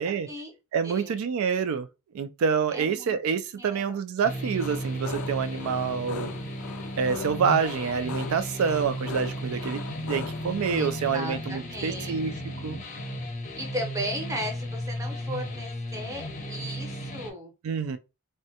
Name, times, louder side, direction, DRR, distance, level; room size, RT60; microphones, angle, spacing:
voice 1, 0.0-0.5 0.8-1.2 2.7-3.2 3.5-4.0 10.8-12.2 13.6-17.5, equal, 15° right, 0.7 m, -36 dB
voice 2, 0.7-1.9 2.1-6.3 7.0-12.3 12.6-12.8 17.6-18.0, right 6 dB, 70° right, 0.3 m, -27 dB
sound 1, 4.2-17.3, equal, 35° left, 0.6 m, -35 dB
sound 2, 4.6-11.0, left 6 dB, 80° left, 0.3 m, -40 dB
3.5 x 2.1 x 2.8 m
head